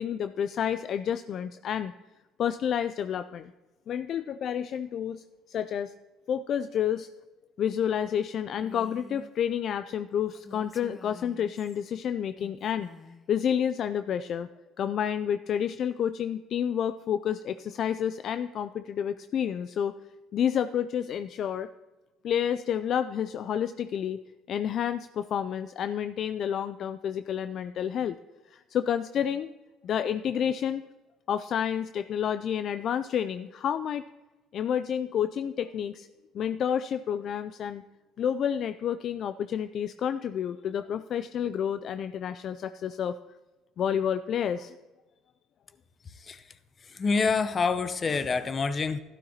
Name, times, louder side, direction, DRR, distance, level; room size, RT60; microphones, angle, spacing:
voice 1, 0.0-1.9 2.4-3.5 3.9-5.9 6.3-7.1 7.6-12.9 13.3-14.5 14.8-20.0 20.3-21.7 22.2-24.2 24.5-28.2 28.5-29.5 29.8-30.8 31.3-34.0 34.5-36.1 36.3-37.8 38.2-43.1 43.8-44.7, left 9 dB, 55° left, 12 dB, 0.3 m, -29 dB
Female speech woman speaking, 8.6-9.3 10.4-11.8 12.4-13.3, left 3 dB, 20° left, 1.1 m, -48 dB
voice 2, 46.0-46.4 46.8-49.0, left 4 dB, 35° left, 12 dB, 0.8 m, -27 dB
12.0 x 12.0 x 2.9 m, 1.2 s
supercardioid pair, 80°, 0 cm